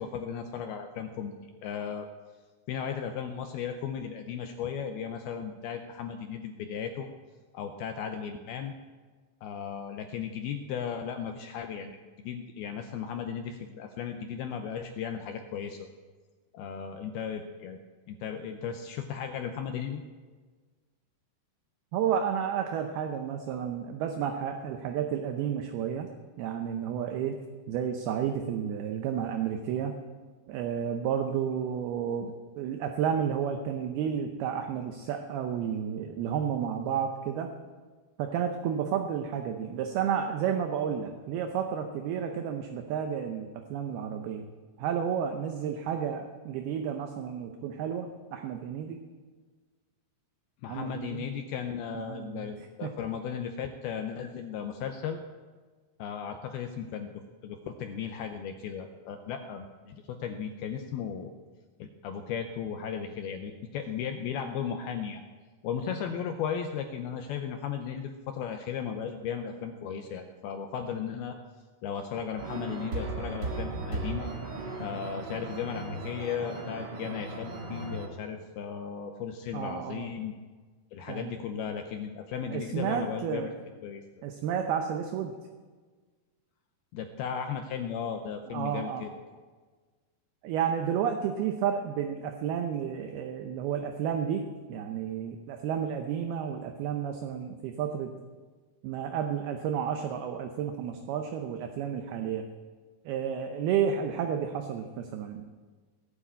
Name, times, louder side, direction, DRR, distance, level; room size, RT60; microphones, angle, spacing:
voice 1, 0.0-1.3 1.6-2.1 2.7-7.1 7.5-8.7 9.4-15.8 16.5-17.8 18.1-20.0 50.6-55.2 56.0-57.1 57.4-61.3 61.8-65.2 65.6-71.4 71.8-74.3 74.8-80.3 80.9-83.5 83.8-84.0 86.9-89.1, left 7 dB, 80° left, 5 dB, 2.3 m, -36 dB
voice 2, 21.9-26.1 26.4-27.4 27.7-29.9 30.5-37.5 38.2-44.5 44.8-49.0 50.7-51.3 51.9-52.5 52.8-52.9 79.5-80.1 81.1-81.3 82.5-83.5 84.2-85.3 88.5-89.0 90.4-98.1 98.8-102.5 103.1-105.4, right 8 dB, 75° right, 5 dB, 2.5 m, -31 dB
sound 1, 72.4-78.1, right 2 dB, 50° right, 1.3 m, -36 dB
19.0 x 7.6 x 8.3 m, 1.4 s
omnidirectional pair, 5.1 m